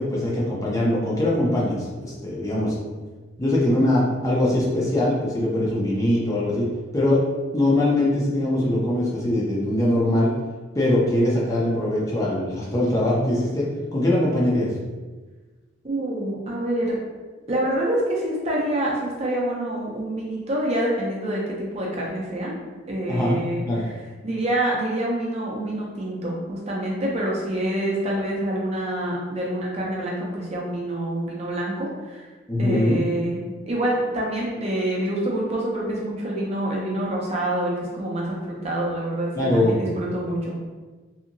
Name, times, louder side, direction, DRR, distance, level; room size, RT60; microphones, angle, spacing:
voice 1, 0.0-2.8 3.4-6.7 6.9-7.2 7.5-10.3 10.7-14.7 23.1-23.4 23.7-23.8 32.5-33.0 39.3-39.8, left 1 dB, 15° left, -5 dB, 0.5 m, -22 dB
voice 2, 15.8-17.0 17.5-22.5 22.9-24.0 24.2-32.3 32.6-33.4 33.7-40.5, right 1 dB, 35° right, -3 dB, 0.5 m, -26 dB
2.8 x 2.6 x 2.6 m, 1.3 s
head